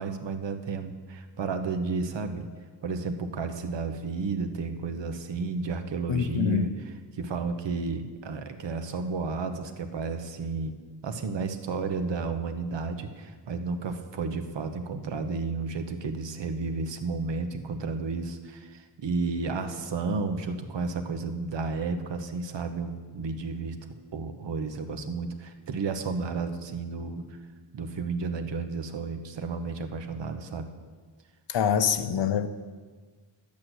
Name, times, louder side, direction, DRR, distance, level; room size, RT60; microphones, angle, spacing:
voice 1, 0.0-2.4 2.8-6.7 7.1-10.7 11.0-23.8 24.1-27.4 27.7-30.7, right 4 dB, 80° right, 7 dB, 1.2 m, -32 dB
voice 2, 6.1-6.7 31.5-32.5, left 8 dB, 85° left, 10 dB, 0.9 m, -25 dB
10.5 x 8.7 x 8.0 m, 1.4 s
wide cardioid pair, 125°, 42 cm